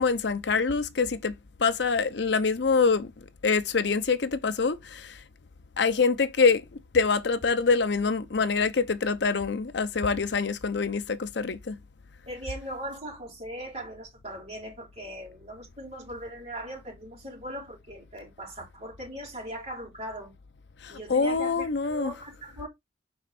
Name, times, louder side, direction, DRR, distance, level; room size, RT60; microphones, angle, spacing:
voice 1, 0.0-1.3 1.6-3.1 3.4-5.2 5.8-6.6 6.9-11.7 20.8-22.1, left 4 dB, 65° left, 0.6 m, -25 dB
voice 2, 12.3-20.3 20.9-22.7, right 1 dB, 35° right, 4.1 m, -39 dB
5.2 x 4.3 x 4.2 m
head